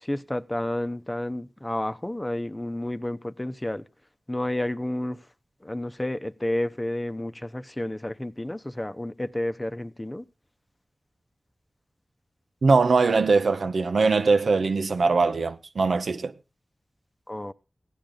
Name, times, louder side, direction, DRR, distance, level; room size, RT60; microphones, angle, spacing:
voice 1, 0.0-3.9 4.3-5.2 5.6-10.2 17.3-17.5, left 1 dB, 20° left, 0.8 m, -30 dB
voice 2, 12.6-16.3, right 4 dB, 85° right, 0.8 m, -21 dB
15.5 x 10.5 x 3.8 m
cardioid pair, 45°, 0 cm